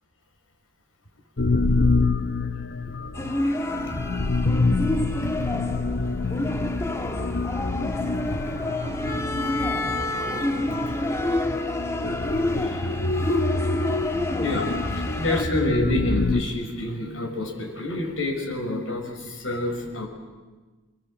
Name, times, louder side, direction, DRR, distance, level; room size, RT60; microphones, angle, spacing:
sound 1, 1.4-16.4, left 3 dB, 55° left, 0.9 m, -27 dB
sound 2, 3.1-15.4, left 1 dB, 15° left, 1.4 m, -29 dB
voice 1, 4.8-5.5 6.2-6.3 6.9-7.3 8.3-8.5 9.1-9.2 10.8-11.1 12.5-13.1 13.9-14.0 14.4-20.1, left 1 dB, 80° left, 2 dB, 6.0 m, -29 dB
29.0 x 22.5 x 7.8 m, 1.3 s
head